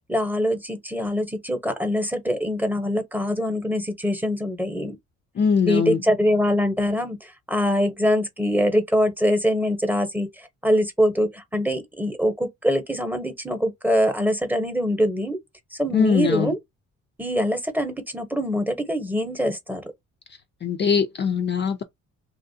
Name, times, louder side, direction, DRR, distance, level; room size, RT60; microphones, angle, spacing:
voice 1, 0.1-4.9 5.6-10.3 10.6-15.4 15.8-16.6 17.2-19.8, equal, 5° right, 0.9 m, -23 dB
voice 2, 5.4-6.0 15.9-16.5 20.6-21.8, left 6 dB, 35° left, 0.4 m, -21 dB
3.0 x 2.4 x 2.6 m
cardioid pair, 90°, 30 cm